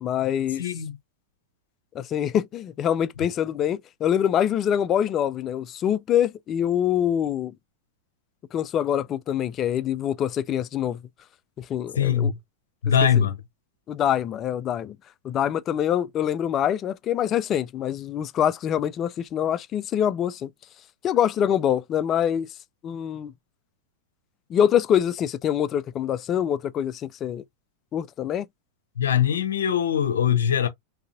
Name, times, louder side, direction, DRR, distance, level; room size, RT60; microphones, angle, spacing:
voice 1, 0.0-0.7 1.9-7.5 8.5-11.0 11.6-12.3 13.1-13.3 13.9-15.0 15.2-20.5 21.0-22.5 22.8-23.3 24.5-27.4 27.9-28.5, left 9 dB, 30° left, 0.3 m, -25 dB
voice 2, 0.6-1.0 12.0-12.3 12.8-13.3 29.0-30.7, left 8 dB, 65° left, 0.6 m, -22 dB
3.7 x 2.7 x 2.5 m
figure-of-eight pair, 90°, 0 cm